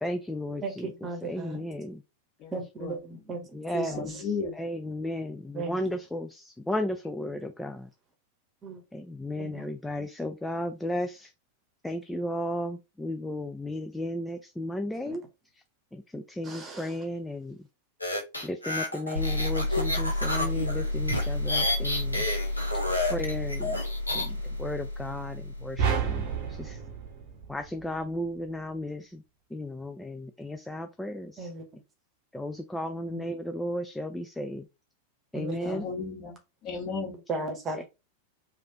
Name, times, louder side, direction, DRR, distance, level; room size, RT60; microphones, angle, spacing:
voice 1, 0.0-0.9 1.3-1.9 3.5-7.9 8.9-11.3 11.8-15.2 15.9-17.6 18.4-22.2 23.1-23.8 24.1-26.8 27.5-29.2 29.5-31.5 32.3-34.7 35.3-35.9 37.8-37.9, left 1 dB, 5° left, 0.3 m, -34 dB
voice 2, 0.6-1.6 2.5-4.2 5.5-5.9 8.6-8.8 9.4-9.7 15.0-15.2 16.4-17.0 31.4-31.6 35.3-35.8 37.3-37.8, right 3 dB, 25° right, 1.0 m, -36 dB
voice 3, 3.9-4.6 33.1-33.2 35.6-37.1, left 5 dB, 35° left, 1.5 m, -34 dB
sound 1, 18.0-24.3, left 2 dB, 85° left, 0.8 m, -30 dB
sound 2, 19.1-26.7, left 1 dB, 85° right, 0.7 m, -31 dB
sound 3, 25.8-28.2, right 7 dB, 45° right, 0.7 m, -30 dB
3.2 x 2.4 x 2.8 m
figure-of-eight pair, 90°, 0 cm